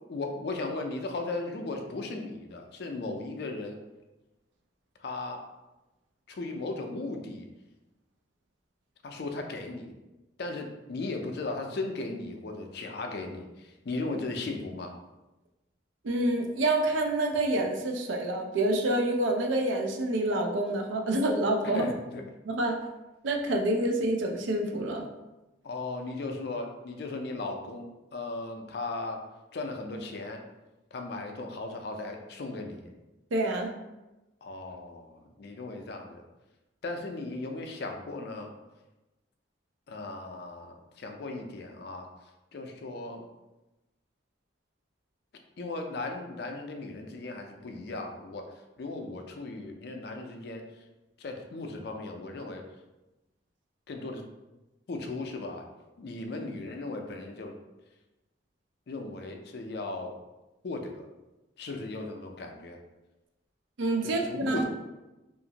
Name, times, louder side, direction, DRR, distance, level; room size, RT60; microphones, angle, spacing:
voice 1, 0.1-3.8 5.0-5.4 6.3-7.5 9.0-9.9 10.4-14.9 21.7-22.2 25.6-27.9 28.1-29.2 29.5-30.4 30.9-32.9 34.4-36.2 36.8-38.5 39.9-42.1 42.5-43.2 45.6-50.6 51.2-52.6 53.9-54.2 54.9-55.7 56.0-57.5 58.9-60.1 60.6-61.0 61.6-62.8 64.0-64.6, left 2 dB, 55° left, 3 dB, 0.4 m, -37 dB
voice 2, 16.0-21.9 22.4-22.8 23.2-25.0 33.3-33.7 63.8-64.6, right 1 dB, 75° right, 3 dB, 0.4 m, -27 dB
2.9 x 2.5 x 2.8 m, 1.0 s
head